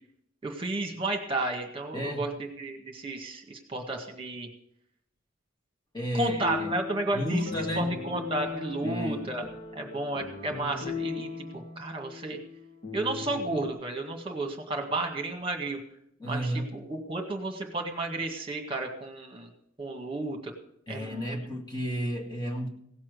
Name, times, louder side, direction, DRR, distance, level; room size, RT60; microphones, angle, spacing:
voice 1, 0.4-4.5 6.1-7.4 7.8-9.4 9.8-12.4 12.9-15.8 16.2-19.5 19.8-20.5 20.9-21.4, right 2 dB, 25° right, 3 dB, 1.8 m, -32 dB
voice 2, 1.9-2.3 5.9-6.8 7.1-7.9 8.8-9.3 16.2-16.8 20.9-22.7, equal, 20° left, -1 dB, 1.9 m, -32 dB
sound 1, 6.2-13.7, left 4 dB, 40° left, 1.5 m, -38 dB
17.0 x 7.3 x 6.7 m, 0.72 s
head